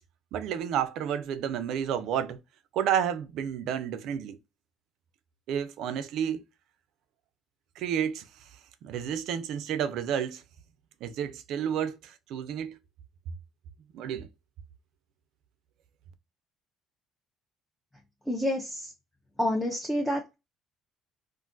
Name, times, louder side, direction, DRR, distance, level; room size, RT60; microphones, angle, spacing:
voice 1, 0.3-2.4 2.7-4.4 5.5-6.4 7.8-8.2 8.8-10.4 11.0-12.8 13.9-14.3, right 9 dB, 70° right, 0.4 m, -30 dB
voice 2, 18.3-18.9 19.4-20.3, left 1 dB, 5° left, 0.4 m, -28 dB
2.5 x 2.3 x 3.7 m
cardioid pair, 160°, 0 cm